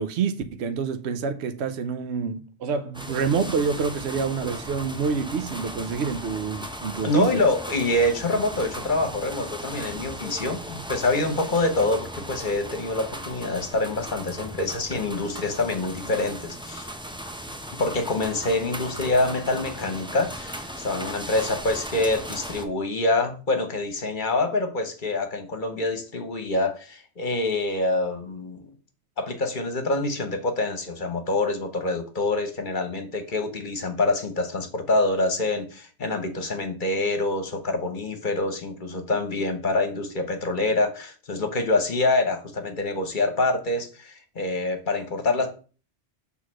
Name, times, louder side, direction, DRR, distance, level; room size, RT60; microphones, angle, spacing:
voice 1, 0.0-7.4, right 5 dB, 75° right, 1.0 m, -27 dB
sound 1, 2.9-22.6, equal, 5° right, 0.6 m, -37 dB
voice 2, 7.0-16.9 17.8-28.7 29.2-45.5, left 2 dB, 50° left, 1.1 m, -26 dB
6.5 x 3.7 x 6.1 m
omnidirectional pair, 1.1 m